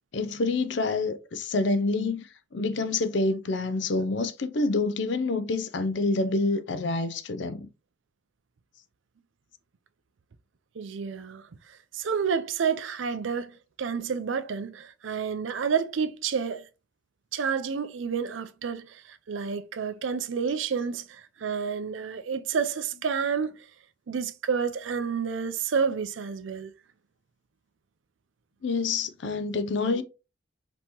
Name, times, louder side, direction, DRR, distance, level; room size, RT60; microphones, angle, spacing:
voice 1, 0.1-2.3 2.5-7.7 28.6-30.0, left 3 dB, 60° left, 0.5 m, -27 dB
voice 2, 10.8-16.6 17.3-23.7 24.1-26.7, right 6 dB, 70° right, 0.4 m, -30 dB
5.3 x 2.9 x 2.9 m
head